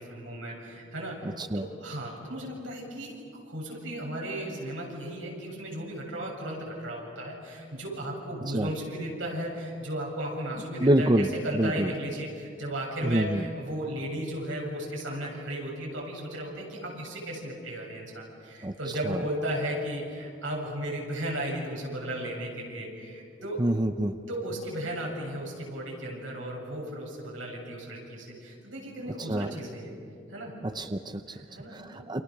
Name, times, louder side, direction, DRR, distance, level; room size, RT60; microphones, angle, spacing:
voice 1, 0.0-3.1 3.5-23.7 24.3-29.9 30.3-30.6 31.3-32.2, right 1 dB, 85° right, -1 dB, 7.7 m, -35 dB
voice 2, 10.8-11.3 11.5-11.9 13.0-13.4 18.6-18.7 19.1-19.2 23.6-24.2 29.3-29.5 30.6-31.2 31.7-32.2, right 1 dB, 25° right, 8 dB, 0.7 m, -26 dB
29.0 x 28.0 x 6.6 m, 2.5 s
head